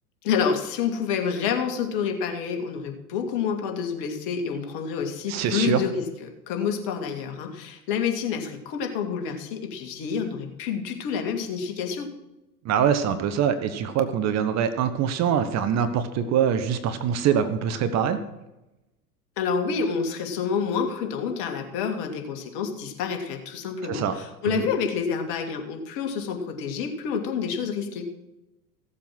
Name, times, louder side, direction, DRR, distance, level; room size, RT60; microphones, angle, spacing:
voice 1, 0.2-6.0 6.5-12.1 19.4-28.1, left 6 dB, 45° left, 4 dB, 2.4 m, -28 dB
voice 2, 5.3-5.8 12.6-18.2 23.8-24.1 24.6-24.7, right 8 dB, 35° right, 10 dB, 1.1 m, -24 dB
16.0 x 7.5 x 6.1 m, 0.96 s
hypercardioid pair, 95°, 49 cm